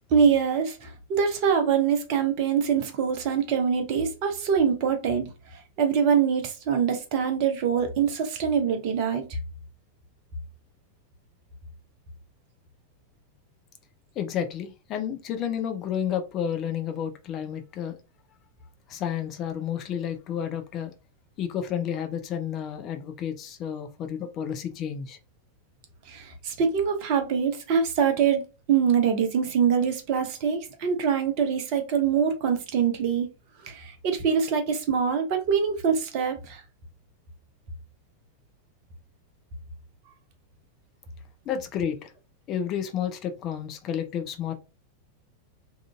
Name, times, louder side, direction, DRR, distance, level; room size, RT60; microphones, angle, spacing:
voice 1, 0.1-5.3 5.8-9.2 26.1-33.3 33.6-36.6, right 7 dB, 45° right, 0.6 m, -24 dB
voice 2, 14.2-17.9 18.9-20.9 21.4-25.2 41.5-42.1 42.5-44.5, left 9 dB, 35° left, 0.4 m, -31 dB
2.8 x 2.4 x 2.3 m
figure-of-eight pair, 90°, 0 cm